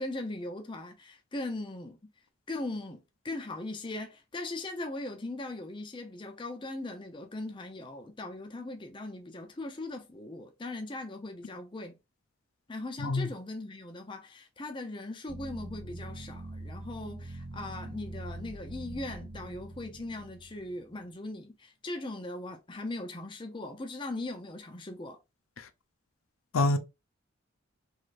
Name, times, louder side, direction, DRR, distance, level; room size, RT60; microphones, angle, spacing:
voice 1, 0.0-2.0 2.5-12.0 12.7-25.2, left 2 dB, 25° left, 0.5 m, -39 dB
voice 2, 13.0-13.3 25.6-25.7 26.5-26.8, left 2 dB, 85° left, 0.5 m, -26 dB
sound 1, 15.3-21.0, right 1 dB, 40° right, 0.5 m, -43 dB
3.2 x 3.1 x 2.4 m
head